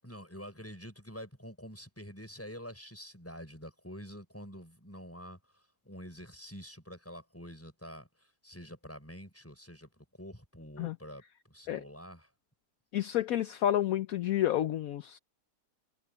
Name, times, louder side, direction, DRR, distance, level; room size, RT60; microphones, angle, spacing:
voice 1, 0.0-12.3, equal, 10° left, 7.2 m, -47 dB
voice 2, 12.9-15.2, left 12 dB, 65° left, 1.1 m, -30 dB
omnidirectional pair, 1.7 m